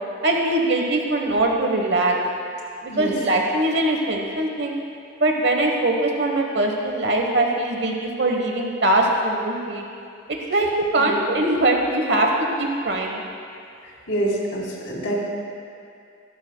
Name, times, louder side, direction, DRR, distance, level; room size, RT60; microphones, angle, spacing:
voice 1, 0.2-2.2 2.8-4.7 5.2-9.8 10.3-12.3 12.6-13.2, right 2 dB, 55° right, 1 dB, 1.1 m, -22 dB
voice 2, 14.1-15.2, right 1 dB, 80° left, -4 dB, 3.3 m, -26 dB
21.0 x 12.5 x 2.2 m, 2.5 s
head